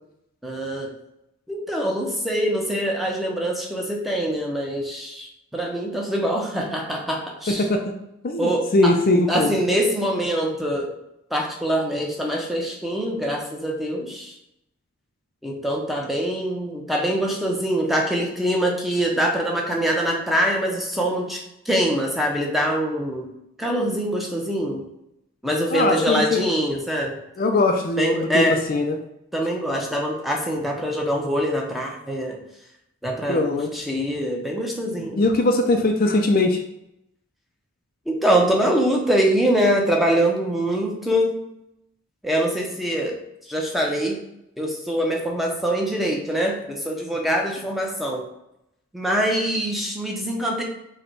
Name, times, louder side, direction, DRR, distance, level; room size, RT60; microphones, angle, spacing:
voice 1, 0.4-0.9 1.5-7.6 8.4-8.9 9.3-10.9 11.3-14.3 15.4-23.3 23.6-24.8 25.4-27.1 28.0-28.6 29.3-32.4 33.0-35.2 38.1-41.3 42.2-43.1 43.5-44.2 44.6-48.2 48.9-50.6, equal, ahead, -1 dB, 0.6 m, -24 dB
voice 2, 7.5-8.0 8.2-9.6 25.7-26.5 27.4-29.0 33.3-33.7 35.2-36.6, left 2 dB, 40° left, 4 dB, 0.4 m, -21 dB
5.0 x 2.2 x 4.5 m, 0.82 s
head